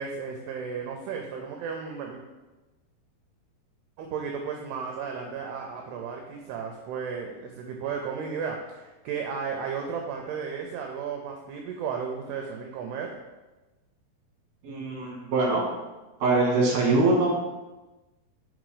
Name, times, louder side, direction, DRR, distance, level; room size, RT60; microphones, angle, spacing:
voice 1, 0.0-2.2 4.0-13.1, right 6 dB, 80° right, 2 dB, 2.5 m, -34 dB
voice 2, 14.6-15.6 16.2-17.3, right 2 dB, 50° right, -3 dB, 2.8 m, -23 dB
6.0 x 5.1 x 4.9 m, 1.1 s
omnidirectional pair, 4.9 m